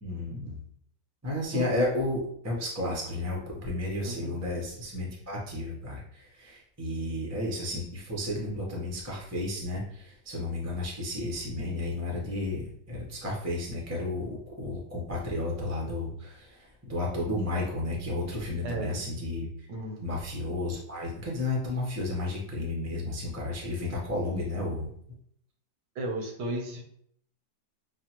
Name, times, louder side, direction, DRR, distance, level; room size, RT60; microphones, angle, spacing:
voice 1, 0.0-0.6 1.2-19.5 20.0-24.9, left 2 dB, 25° right, -2 dB, 0.3 m, -32 dB
voice 2, 4.0-4.3 18.6-19.0 19.7-20.0 25.9-26.8, right 1 dB, 75° right, 2 dB, 1.4 m, -34 dB
6.0 x 2.1 x 2.9 m, 0.69 s
omnidirectional pair, 2.0 m